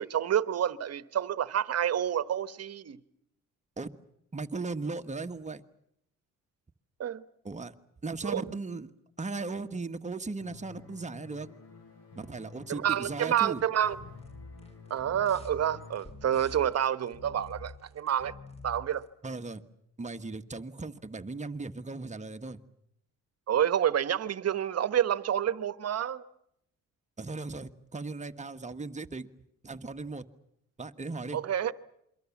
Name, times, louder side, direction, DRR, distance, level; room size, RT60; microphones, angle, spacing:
voice 1, 0.0-3.0 7.0-7.2 8.2-8.4 12.7-14.0 14.9-18.3 18.6-19.0 23.5-26.2 31.3-31.7, right 10 dB, 55° right, 1.2 m, -28 dB
voice 2, 4.3-5.6 7.4-7.7 8.0-8.9 9.2-11.5 12.1-13.6 19.2-19.6 20.0-22.6 27.2-29.3 29.6-30.2 30.8-31.4, right 3 dB, 25° right, 1.5 m, -37 dB
sound 1, 10.4-16.0, left 5 dB, 55° left, 7.2 m, -51 dB
sound 2, 13.5-19.0, left 2 dB, 20° left, 4.5 m, -48 dB
28.0 x 24.0 x 7.2 m
cardioid pair, 90°, 30 cm